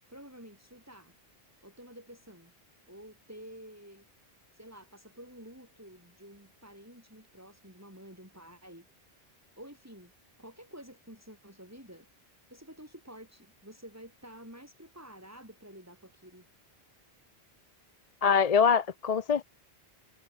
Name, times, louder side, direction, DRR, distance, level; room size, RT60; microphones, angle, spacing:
voice 1, 0.1-1.1 1.6-2.5 2.9-4.1 4.5-8.9 9.6-10.1 10.4-12.1 12.5-16.5, equal, 15° right, 7.8 m, -50 dB
voice 2, 18.2-19.4, left 6 dB, 45° left, 0.6 m, -24 dB
omnidirectional pair, 1.0 m